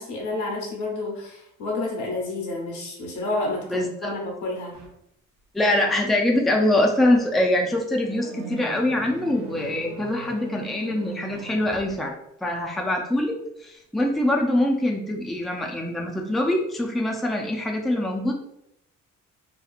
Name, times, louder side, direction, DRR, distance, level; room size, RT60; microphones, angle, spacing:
voice 1, 0.0-4.8, left 2 dB, 85° left, -1 dB, 1.0 m, -30 dB
voice 2, 3.7-4.1 5.5-12.1 12.4-18.3, left 1 dB, ahead, 0 dB, 0.4 m, -24 dB
sound 1, 4.7-5.0 6.8-12.0, right 3 dB, 70° right, 0.6 m, -41 dB
2.8 x 2.3 x 2.4 m, 0.78 s
cardioid pair, 90°, 30 cm